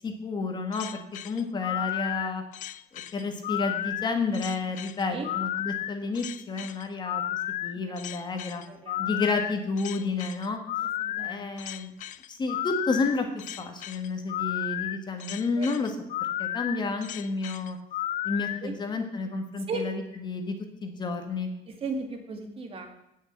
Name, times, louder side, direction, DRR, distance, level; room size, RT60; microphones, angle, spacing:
voice 1, 0.0-2.4 2.9-7.2 7.6-8.6 9.0-10.6 11.2-11.9 12.3-13.3 13.6-15.9 16.4-17.8 18.2-20.6 20.8-21.5, left 3 dB, 25° left, 5 dB, 1.6 m, -30 dB
sound 1, 0.7-18.6, left 13 dB, 50° left, 0.5 m, -33 dB
voice 2, 5.0-5.3 8.7-9.0 11.0-11.5 15.6-15.8 18.6-18.7 19.7-19.9 21.7-22.9, right 3 dB, 35° right, 5 dB, 2.1 m, -35 dB
16.5 x 6.5 x 7.5 m, 0.86 s
cardioid pair, 155°, 16 cm